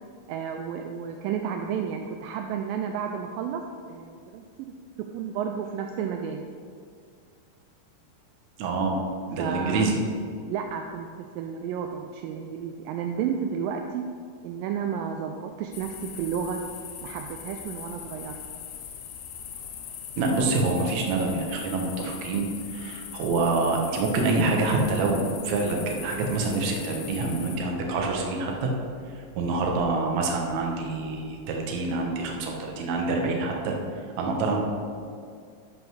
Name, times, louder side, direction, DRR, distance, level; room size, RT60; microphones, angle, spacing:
voice 1, 0.3-3.6 3.9-4.4 5.1-6.4 9.4-9.9 10.5-14.1 14.4-16.6 17.0-18.4, right 7 dB, 80° right, 4 dB, 2.2 m, -32 dB
voice 2, 8.6-9.0 9.3-10.0 20.2-22.5 22.7-28.7 29.4-33.7 34.2-34.6, right 3 dB, 60° right, 0 dB, 2.2 m, -26 dB
sound 1, 15.7-27.6, left 8 dB, 80° left, 1.6 m, -40 dB
11.5 x 5.2 x 6.2 m, 2.2 s
omnidirectional pair, 4.1 m